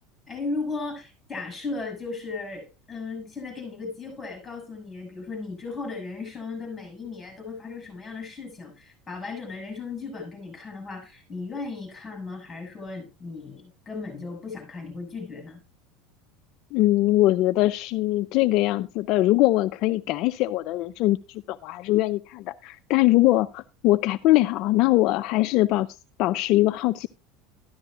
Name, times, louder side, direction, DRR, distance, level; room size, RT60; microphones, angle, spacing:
voice 1, 0.3-15.6, left 3 dB, 15° left, 7.4 m, -36 dB
voice 2, 16.7-25.9 26.2-27.1, left 17 dB, 55° left, 0.4 m, -22 dB
13.5 x 11.5 x 2.5 m
supercardioid pair, 145°, 0 cm